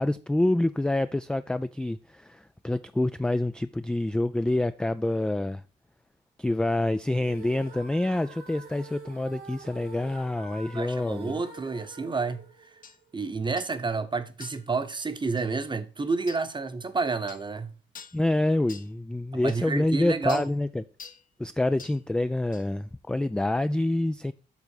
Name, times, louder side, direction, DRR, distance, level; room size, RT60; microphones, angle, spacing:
voice 1, 0.0-5.6 6.4-11.4 18.1-20.8 21.4-24.3, left 1 dB, 5° left, 0.3 m, -27 dB
sound 1, 7.2-13.3, right 4 dB, 90° right, 3.0 m, -47 dB
voice 2, 10.7-12.4 13.1-17.7 19.4-20.5, right 4 dB, 25° right, 0.9 m, -30 dB
sound 2, 12.8-13.0 13.6-13.8 14.4-14.7 15.4-15.5 16.3-16.5 17.3-17.5 17.9-18.2 18.7-18.9 19.5-19.6 20.3-20.5 21.0-21.2 21.8-22.0 22.5-22.7, left 5 dB, 45° left, 0.8 m, -46 dB
7.3 x 3.9 x 6.4 m
cardioid pair, 90°, 20 cm